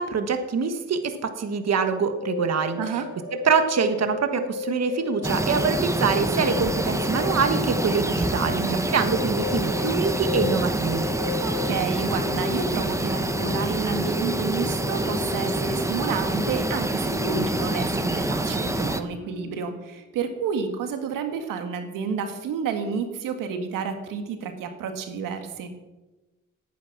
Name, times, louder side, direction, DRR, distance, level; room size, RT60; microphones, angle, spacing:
voice 1, 0.0-2.8 3.3-8.6 8.9-11.1, right 5 dB, 55° right, 8 dB, 1.5 m, -25 dB
sound 1, 2.2-19.6, left 5 dB, 65° left, 4.8 m, -35 dB
voice 2, 2.8-3.1 8.6-8.8 11.4-25.7, right 6 dB, 85° right, 6 dB, 1.8 m, -30 dB
sound 2, 5.2-19.0, right 1 dB, 10° right, 1.3 m, -26 dB
18.5 x 9.3 x 6.0 m, 1.1 s
cardioid pair, 70°, 32 cm